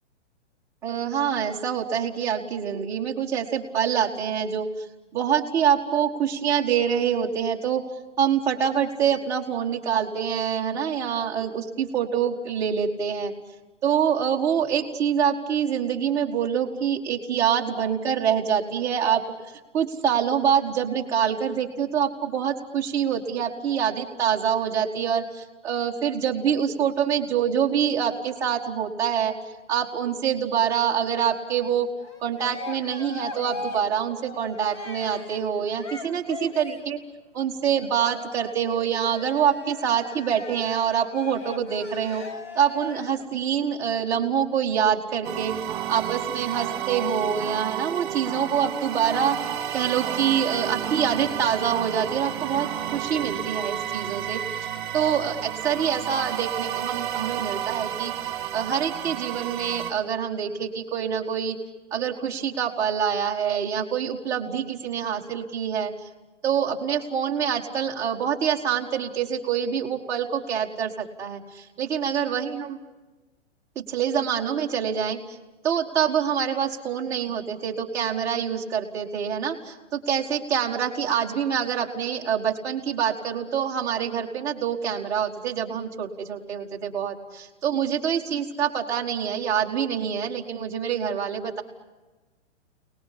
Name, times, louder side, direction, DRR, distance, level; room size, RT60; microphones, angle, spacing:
voice 1, 0.8-4.9 5.1-7.8 8.2-13.3 13.8-19.2 19.7-29.3 29.7-31.9 32.2-37.0 37.3-42.2 42.5-45.5 45.9-49.4 49.7-61.6 61.9-65.9 66.4-72.8 73.7-75.2 75.6-91.6, right 8 dB, 10° right, -4 dB, 1.7 m, -25 dB
Cheering, 32.0-37.0 37.7-43.3, left 3 dB, 25° left, 1.2 m, -40 dB
sound 1, 45.2-59.9, right 11 dB, 25° right, 2.5 m, -31 dB
30.0 x 20.0 x 10.0 m, 1.2 s
hypercardioid pair, 180°, 36 cm